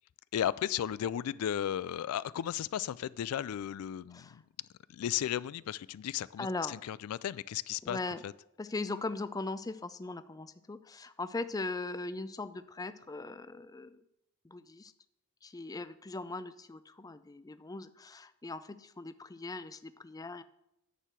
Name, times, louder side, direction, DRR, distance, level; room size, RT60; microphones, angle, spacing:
voice 1, 0.3-4.4 4.9-8.0 8.2-8.3, left 10 dB, 90° left, 0.3 m, -35 dB
voice 2, 4.1-4.4 6.4-6.8 7.8-8.2 8.6-14.0 14.4-14.9 15.4-20.4, left 3 dB, 15° left, 0.4 m, -39 dB
10.0 x 4.7 x 7.5 m
head